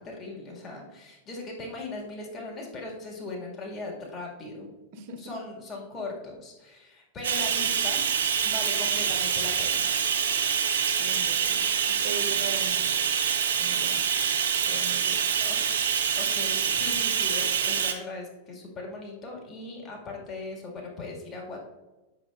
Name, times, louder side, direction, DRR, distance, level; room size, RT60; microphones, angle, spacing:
voice 1, 0.0-4.7 5.2-8.0 8.4-9.9 15.4-15.6 16.1-21.6, left 2 dB, 35° left, -2 dB, 2.1 m, -39 dB
Bathtub (filling or washing), 7.2-17.9, right 7 dB, 85° right, 1.0 m, -26 dB
voice 2, 11.0-12.9 13.6-15.2, right 6 dB, 55° right, 5 dB, 1.0 m, -40 dB
7.8 x 5.6 x 2.5 m, 1.1 s
hypercardioid pair, 105°, 0 cm